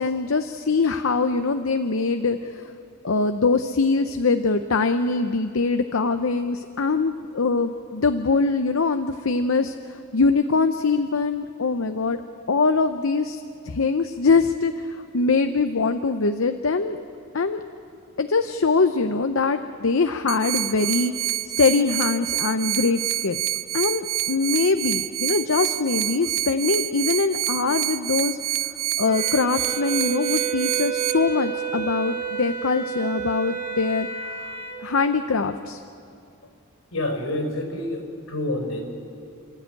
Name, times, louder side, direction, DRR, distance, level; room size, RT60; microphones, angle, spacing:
voice 1, 0.0-2.7 3.0-12.2 12.5-17.0 17.3-17.6 18.2-23.4 23.7-28.4 29.0-34.1 34.8-35.8, left 4 dB, 70° left, 8 dB, 0.7 m, -23 dB
sound 1, 20.3-31.1, right 15 dB, 70° right, 0.7 m, -27 dB
Wind instrument woodwind instrument, 29.1-34.8, right 7 dB, 30° right, 3.9 m, -30 dB
voice 2, 36.9-38.8, left 1 dB, 85° left, 4 dB, 4.7 m, -28 dB
29.0 x 13.0 x 9.1 m, 2.5 s
head